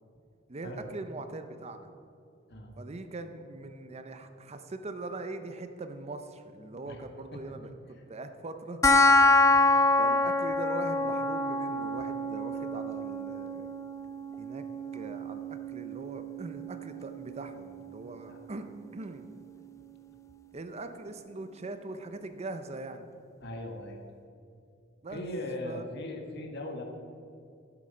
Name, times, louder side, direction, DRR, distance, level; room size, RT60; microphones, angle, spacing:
voice 1, 0.5-1.9 2.8-9.0 9.3-9.5 10.0-13.7 14.4-14.6 14.9-15.4 15.7-19.3 20.5-23.1 25.0-25.3 25.6-25.8, right 2 dB, 35° right, 8 dB, 0.6 m, -41 dB
sound 1, 8.8-19.8, left 2 dB, 15° left, 0.5 m, -27 dB
voice 2, 23.4-24.0 25.1-26.8, left 1 dB, 60° left, 3 dB, 1.4 m, -39 dB
12.5 x 7.5 x 5.3 m, 2.5 s
head